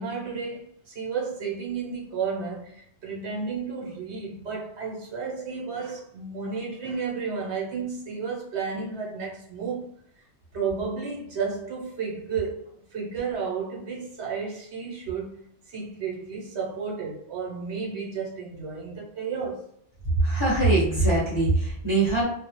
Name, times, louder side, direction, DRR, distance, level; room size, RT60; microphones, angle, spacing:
voice 1, 0.0-10.2 10.5-19.7, right 5 dB, 70° right, 1.0 m, -32 dB
voice 2, 20.2-22.2, right 2 dB, 30° left, 0.8 m, -22 dB
2.3 x 2.0 x 2.9 m
omnidirectional pair, 1.2 m